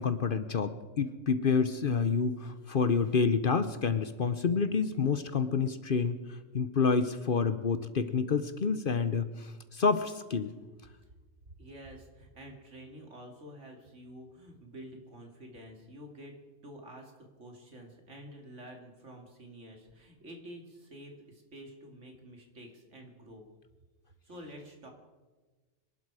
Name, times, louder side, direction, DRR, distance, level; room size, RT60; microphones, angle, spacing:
voice 1, 0.0-10.5, left 5 dB, 50° left, 11 dB, 0.9 m, -28 dB
voice 2, 11.6-16.4 16.6-23.4 24.2-24.9, equal, 65° right, 2 dB, 2.8 m, -49 dB
25.0 x 12.0 x 4.8 m, 1.3 s
omnidirectional pair, 1.3 m